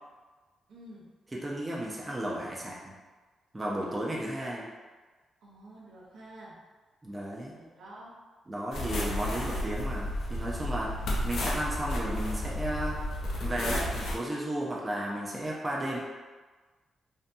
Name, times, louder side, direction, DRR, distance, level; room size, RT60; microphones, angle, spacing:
voice 1, 0.7-1.1 5.4-6.6 7.5-8.1, right 1 dB, 80° right, -6 dB, 0.7 m, -49 dB
voice 2, 1.3-3.0 3.5-4.7 7.0-7.5 8.5-11.0 11.2-13.0 13.4-16.0, right 1 dB, 15° right, -4 dB, 0.4 m, -34 dB
sound 1, 8.7-14.1, left 1 dB, 75° left, 0.5 m, -32 dB
2.6 x 2.6 x 2.2 m, 1.3 s
cardioid pair, 125°, 0 cm